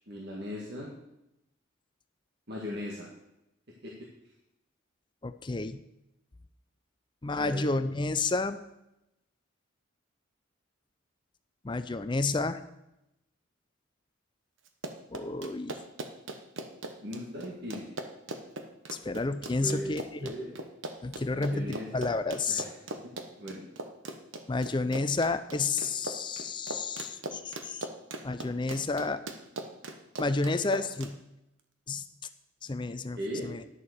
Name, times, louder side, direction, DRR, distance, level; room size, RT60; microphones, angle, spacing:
voice 1, 0.1-0.9 2.5-3.1 3.8-3.9 7.3-7.6 17.0-17.9 19.6-19.9 20.2-20.5 21.3-22.1 22.5-23.1 23.4-23.6 33.2-33.5, equal, 50° right, -3 dB, 1.8 m, -38 dB
voice 2, 5.2-5.8 7.2-8.6 11.6-12.6 15.1-15.7 18.9-20.3 21.0-22.6 24.5-27.9 28.2-29.2 30.2-31.2 31.9-32.0 32.6-33.6, left 3 dB, 25° left, 11 dB, 0.4 m, -31 dB
Run, 14.7-31.1, right 2 dB, 70° right, 1.1 m, -40 dB
11.0 x 6.9 x 6.5 m, 0.87 s
head